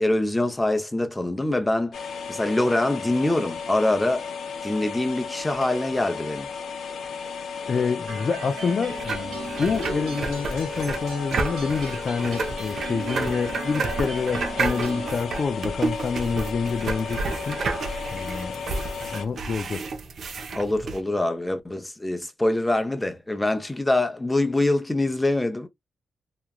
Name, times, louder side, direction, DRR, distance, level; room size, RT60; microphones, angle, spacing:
voice 1, 0.0-4.3 4.6-6.5 7.6-7.9 20.5-25.7, left 2 dB, 10° left, 0.7 m, -24 dB
sound 1, 1.9-19.3, left 6 dB, 70° left, 0.7 m, -35 dB
voice 2, 7.7-17.6 18.1-18.7 19.0-19.9, left 5 dB, 50° left, 0.3 m, -27 dB
sound 2, 8.1-15.1, right 3 dB, 90° right, 1.3 m, -38 dB
sound 3, 8.9-21.0, right 3 dB, 60° right, 0.6 m, -31 dB
2.9 x 2.3 x 2.3 m
cardioid pair, 75°, 0 cm